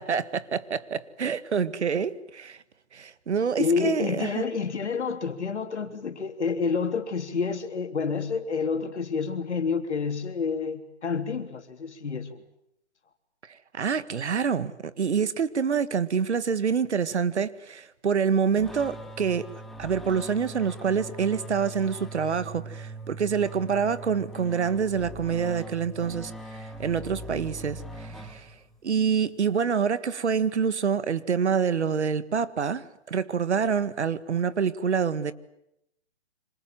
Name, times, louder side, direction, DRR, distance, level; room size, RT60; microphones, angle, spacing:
voice 1, 0.0-2.6 2.9-4.4 13.5-19.5 19.8-28.5 28.8-35.3, right 6 dB, 80° right, 1.8 m, -27 dB
voice 2, 3.6-12.4, left 5 dB, 80° left, 3.5 m, -29 dB
sound 1, 18.6-28.8, right 1 dB, ahead, 1.0 m, -41 dB
27.5 x 26.0 x 7.7 m
hypercardioid pair, 160°, 34 cm